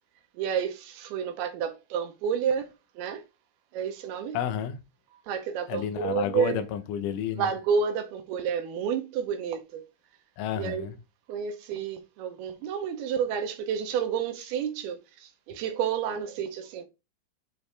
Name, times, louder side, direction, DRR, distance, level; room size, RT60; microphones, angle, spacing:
voice 1, 0.4-2.7 3.0-3.2 3.7-4.4 5.3-6.6 7.4-9.8 10.6-10.9 11.3-16.8, right 7 dB, 75° right, 2.6 m, -30 dB
voice 2, 4.3-4.8 5.7-7.5 10.4-10.9, left 9 dB, 85° left, 1.9 m, -31 dB
7.5 x 4.5 x 3.3 m
omnidirectional pair, 4.9 m